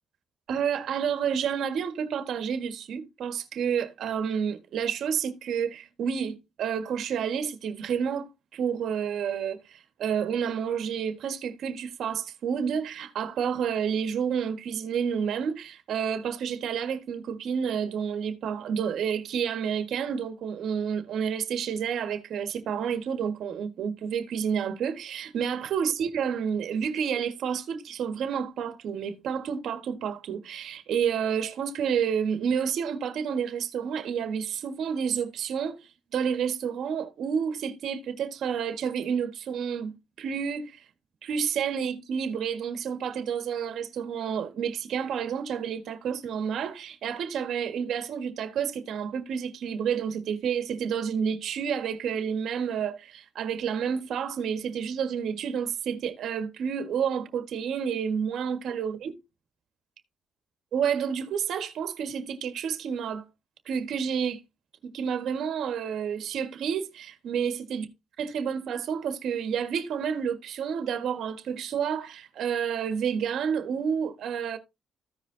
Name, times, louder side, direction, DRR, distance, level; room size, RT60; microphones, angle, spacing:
voice 1, 0.5-35.8 36.1-40.8 41.2-59.1 60.7-63.2 63.6-64.4 64.8-67.8 68.2-74.6, right 7 dB, 70° right, 1.5 m, -30 dB
15.0 x 5.1 x 2.7 m
cardioid pair, 90°, 0 cm